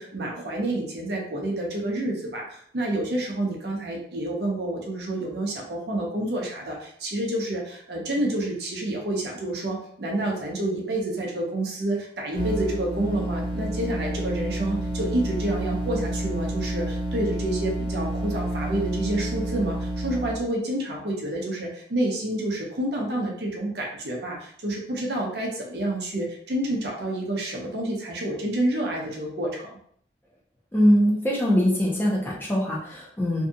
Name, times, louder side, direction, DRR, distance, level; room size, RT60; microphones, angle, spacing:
voice 1, 0.0-29.8, right 1 dB, 65° right, -1 dB, 0.7 m, -29 dB
sound 1, 12.3-20.4, right 1 dB, 25° right, 0.7 m, -29 dB
voice 2, 30.7-33.5, equal, 10° left, -5 dB, 0.6 m, -22 dB
2.7 x 2.3 x 2.7 m, 0.64 s
head